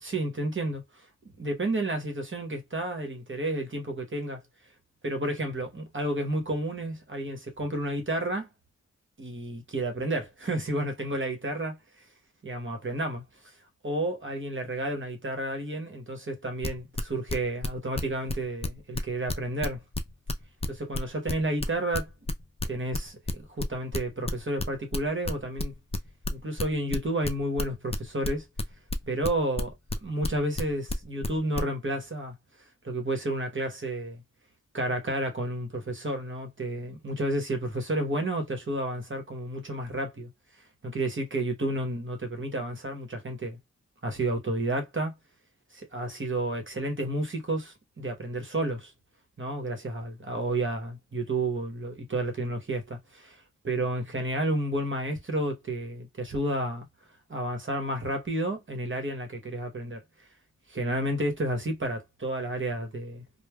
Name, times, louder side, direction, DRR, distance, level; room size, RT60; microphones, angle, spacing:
voice 1, 0.0-4.4 5.0-8.5 9.2-11.8 12.4-13.5 13.8-19.8 20.7-22.1 22.6-25.7 26.3-28.4 29.1-29.7 30.0-32.3 32.8-34.2 34.7-40.3 40.8-43.6 44.0-45.2 45.7-48.9 49.4-56.9 57.3-60.3 60.7-63.2, right 1 dB, 40° right, 1.0 m, -31 dB
sound 1, 16.6-18.3 18.6-22.7 22.9-26.6 26.9-31.6, left 2 dB, 20° left, 0.4 m, -30 dB
3.1 x 2.1 x 2.2 m
cardioid pair, 50°, 30 cm